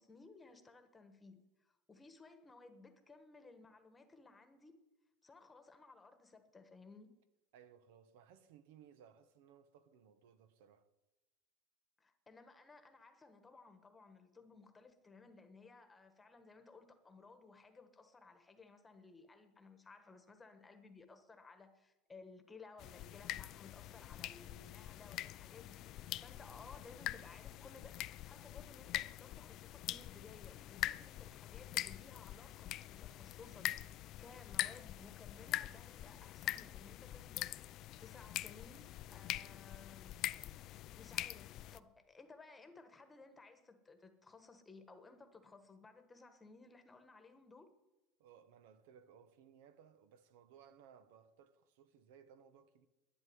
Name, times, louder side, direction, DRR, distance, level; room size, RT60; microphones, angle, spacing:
voice 1, 0.0-4.8 5.2-7.1 12.0-40.2 41.0-47.7, left 3 dB, 10° left, 1.3 m, -59 dB
voice 2, 7.5-10.9 48.2-52.9, right 8 dB, 80° right, 1.2 m, -62 dB
sound 1, 22.8-41.8, left 14 dB, 40° left, 0.4 m, -44 dB
12.0 x 10.0 x 9.5 m
cardioid pair, 155°, 0 cm